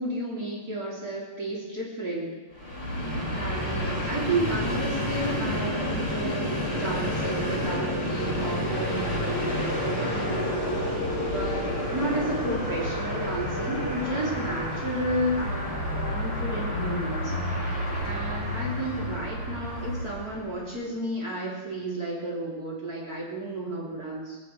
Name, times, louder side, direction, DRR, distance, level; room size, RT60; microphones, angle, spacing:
voice 1, 0.0-2.3 3.3-10.3 11.3-17.3 18.0-24.4, right 1 dB, 40° right, -6 dB, 3.8 m, -32 dB
Train, 2.5-20.6, left 1 dB, 15° left, 5.5 m, -29 dB
23.0 x 15.0 x 3.4 m, 1.2 s
omnidirectional pair, 2.4 m